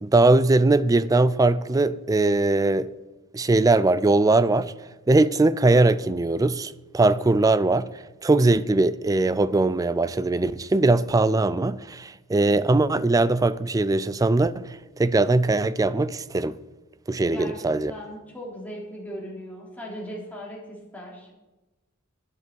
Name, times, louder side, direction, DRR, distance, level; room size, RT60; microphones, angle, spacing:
voice 1, 0.0-2.9 3.3-4.7 5.1-7.9 8.2-16.6 17.1-17.9, right 2 dB, 15° right, 0.4 m, -21 dB
voice 2, 17.2-21.3, equal, 10° left, 3.2 m, -38 dB
12.0 x 9.9 x 4.6 m
head